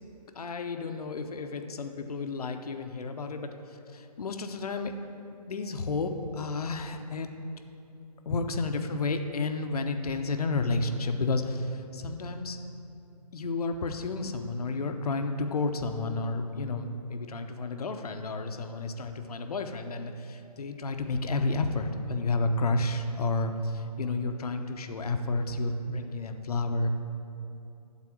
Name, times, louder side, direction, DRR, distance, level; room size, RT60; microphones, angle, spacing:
voice 1, 0.3-3.6 3.9-5.0 5.5-7.3 8.3-12.6 13.3-26.9, left 3 dB, 65° left, 6 dB, 0.8 m, -31 dB
12.0 x 4.1 x 7.5 m, 2.7 s
hypercardioid pair, 155°, 21 cm